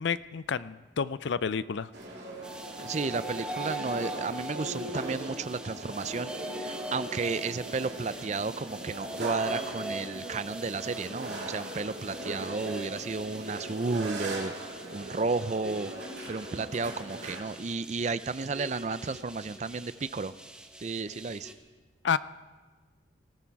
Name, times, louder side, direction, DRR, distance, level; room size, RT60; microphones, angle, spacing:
voice 1, 0.0-1.9 22.0-22.2, left 6 dB, 65° left, 16 dB, 0.4 m, -30 dB
sound 1, 1.9-17.4, right 1 dB, 60° right, 3.2 m, -40 dB
sound 2, 2.4-21.5, right 1 dB, 5° right, 1.0 m, -42 dB
voice 2, 2.8-15.9 16.3-20.3 20.8-21.5, right 4 dB, 35° right, 15 dB, 0.4 m, -33 dB
19.5 x 14.0 x 4.7 m, 1.3 s
head